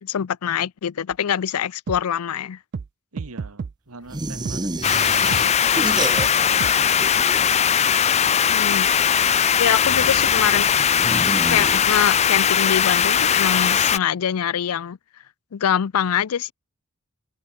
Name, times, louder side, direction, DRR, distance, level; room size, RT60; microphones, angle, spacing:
voice 1, 0.0-2.6 8.5-8.9 9.6-10.8 11.5-15.0 15.5-16.5, left 8 dB, 85° left, 0.5 m, -24 dB
sound 1, 1.1-1.2 1.9-2.0 2.7-2.9 3.2-3.7 4.5-4.6 5.3-5.4 6.2-6.3 6.6-6.7, right 5 dB, 50° right, 0.4 m, -30 dB
voice 2, 3.1-7.3 9.9-10.2, right 3 dB, 90° right, 1.9 m, -41 dB
sound 2, 4.1-6.7 6.9-7.8 9.8-12.3, right 2 dB, 20° right, 1.0 m, -31 dB
sound 3, 4.8-14.0, left 8 dB, 30° left, 0.5 m, -19 dB
head